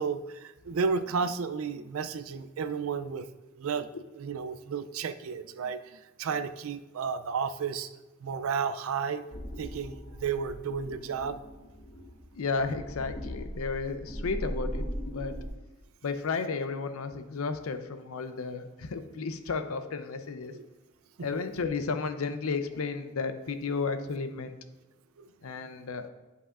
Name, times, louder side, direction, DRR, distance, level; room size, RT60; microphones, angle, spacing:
voice 1, 0.0-3.3 3.5-3.9 4.2-7.9 8.2-9.2 9.6-11.4 20.5-20.6 21.2-21.3 25.2-25.3, right 5 dB, 70° right, 11 dB, 0.4 m, -32 dB
sound 1, 9.3-15.5, equal, 50° left, 1.3 m, -39 dB
voice 2, 12.4-15.4 16.0-20.6 21.2-24.6 25.4-26.1, left 4 dB, 75° left, 10 dB, 0.6 m, -33 dB
9.8 x 5.6 x 2.4 m, 1.1 s
head